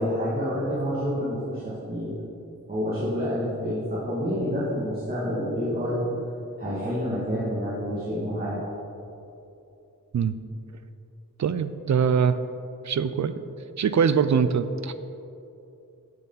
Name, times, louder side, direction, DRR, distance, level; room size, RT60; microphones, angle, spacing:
voice 1, 0.0-2.1 2.7-6.1 6.6-8.6, equal, 25° right, -10 dB, 2.2 m, -28 dB
voice 2, 11.4-12.4 12.8-13.3 13.8-14.9, right 6 dB, 55° right, 12 dB, 0.4 m, -23 dB
10.0 x 6.8 x 4.0 m, 2.8 s
wide cardioid pair, 90°, 34 cm